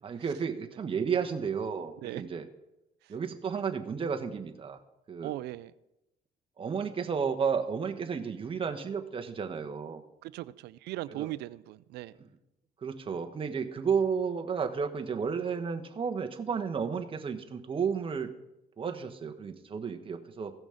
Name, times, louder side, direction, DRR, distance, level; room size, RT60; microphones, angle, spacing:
voice 1, 0.0-2.4 3.1-4.8 5.1-5.3 6.6-10.0 11.2-11.3 12.8-18.3 18.8-20.5, right 6 dB, 30° right, 5 dB, 1.2 m, -32 dB
voice 2, 5.2-5.7 10.2-12.2, right 16 dB, 80° right, 18 dB, 0.4 m, -39 dB
16.0 x 6.2 x 5.1 m, 0.90 s
cardioid pair, 110°, 17 cm